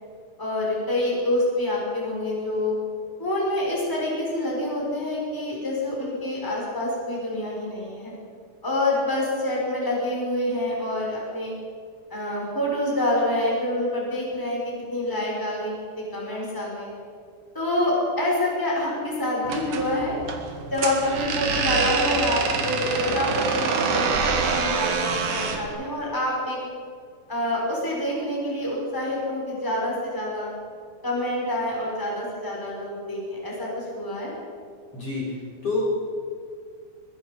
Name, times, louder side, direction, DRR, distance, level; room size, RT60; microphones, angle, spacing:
voice 1, 0.4-2.7 3.2-8.1 8.6-11.5 12.1-16.9 17.5-20.1 20.7-26.6 27.3-30.5 31.0-34.3, left 1 dB, 5° left, -3 dB, 5.9 m, -27 dB
sound 1, 19.4-25.7, right 5 dB, 60° right, 3.2 m, -26 dB
voice 2, 34.9-35.8, left 3 dB, 40° left, -6 dB, 5.9 m, -28 dB
24.0 x 21.5 x 5.5 m, 2.1 s
omnidirectional pair, 4.4 m